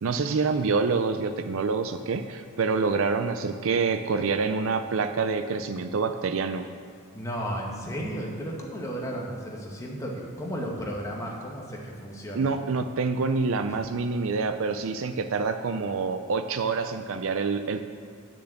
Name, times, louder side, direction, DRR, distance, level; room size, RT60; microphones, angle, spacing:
voice 1, 0.0-6.7 12.3-17.8, right 4 dB, 65° right, 8 dB, 0.5 m, -27 dB
voice 2, 7.1-12.5, equal, 15° left, -2 dB, 1.6 m, -34 dB
10.5 x 6.9 x 7.8 m, 2.1 s
head